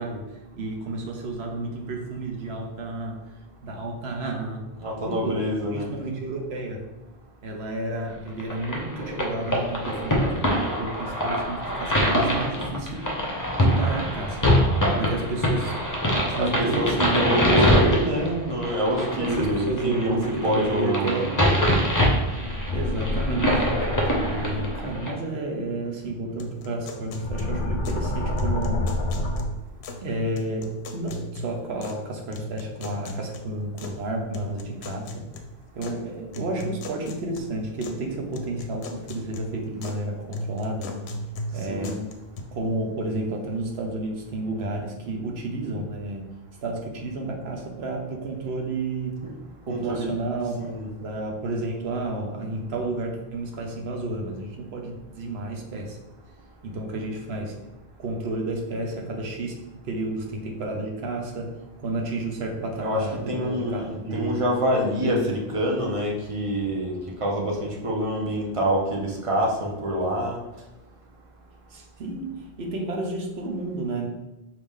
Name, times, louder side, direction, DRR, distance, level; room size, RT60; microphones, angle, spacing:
voice 1, 0.0-4.7 5.0-6.9 7.4-13.1 13.6-14.5 15.0-15.8 16.3-17.6 19.2-21.5 22.7-23.7 24.3-28.9 30.0-35.3 35.7-41.1 41.5-42.0 42.5-46.3 46.6-49.2 49.7-50.7 51.0-56.0 56.6-57.6 58.0-64.5 65.0-65.4 71.7-74.1, right 2 dB, 75° right, 1 dB, 1.1 m, -31 dB
voice 2, 4.8-5.9 16.3-21.2 41.7-42.0 49.2-49.3 49.7-50.2 50.6-50.9 62.8-70.4, equal, 35° right, -2 dB, 0.8 m, -26 dB
sound 1, 8.4-25.1, equal, 20° left, 0.7 m, -24 dB
je monster, 22.4-24.9 26.9-29.4, left 1 dB, 55° left, 0.7 m, -28 dB
sound 2, 26.4-28.1 28.4-30.1 30.4-32.0 32.3-34.0 34.3-36.0 36.3-38.0 38.3-40.0 40.3-42.4, equal, 90° left, 0.8 m, -37 dB
4.8 x 2.8 x 3.6 m, 1.0 s
omnidirectional pair, 1.1 m